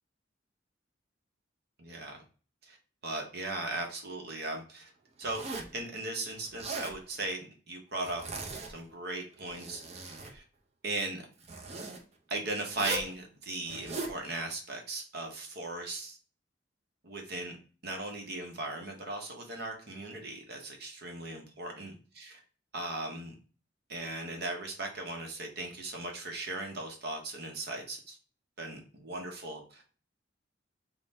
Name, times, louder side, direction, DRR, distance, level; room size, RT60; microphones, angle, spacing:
voice 1, 1.8-2.2 2.7-2.8 3.0-4.9 5.2-5.4 5.7-8.2 8.7-9.8 10.1-10.4 10.8-11.2 12.3-16.2 17.0-17.6 17.8-22.4 22.7-23.3 23.9-28.2 28.6-29.9, right 2 dB, 55° right, 2 dB, 0.9 m, -38 dB
Zipper (clothing), 5.2-5.8 6.4-7.0 8.0-8.9 9.3-10.3 11.4-12.0 12.7-13.1 13.6-14.2, right 3 dB, 35° right, 0.6 m, -39 dB
3.8 x 2.1 x 4.1 m, 0.37 s
head